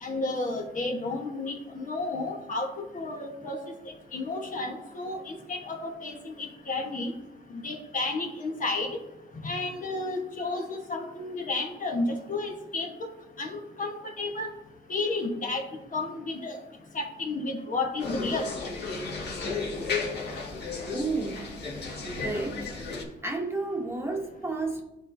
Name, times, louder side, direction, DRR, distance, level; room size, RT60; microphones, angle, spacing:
voice 1, 0.0-2.7 2.9-3.6 4.1-7.1 7.5-8.9 9.4-12.9 13.4-14.5 14.9-15.6 15.9-16.6 16.9-18.5, left 2 dB, 40° left, 2 dB, 1.3 m, -32 dB
sound 1, 18.0-23.0, left 4 dB, 60° left, 1.8 m, -34 dB
voice 2, 20.9-21.5 22.2-22.9 23.2-24.8, right 3 dB, 10° right, 1 dB, 1.2 m, -32 dB
11.0 x 4.3 x 2.7 m, 0.98 s
cardioid pair, 90°, 20 cm